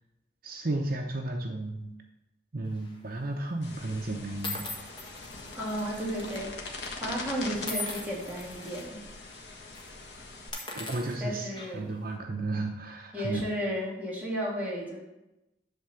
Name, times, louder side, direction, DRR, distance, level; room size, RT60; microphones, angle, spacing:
voice 1, 0.4-1.9 2.5-4.6 10.7-11.5 11.7-13.4, right 2 dB, 55° right, 2 dB, 0.8 m, -33 dB
sound 1, 2.8-3.1 3.8-3.9 4.4-6.4 6.7-6.9 7.6-8.8 9.3-9.4 9.7-9.9 10.4-12.0, left 2 dB, 25° left, 1.5 m, -40 dB
sound 2, 3.6-10.5, left 3 dB, 70° left, 1.5 m, -42 dB
voice 2, 5.5-9.0 11.2-11.9 13.1-15.0, equal, 10° right, -6 dB, 2.5 m, -33 dB
11.0 x 3.7 x 7.0 m, 0.94 s
head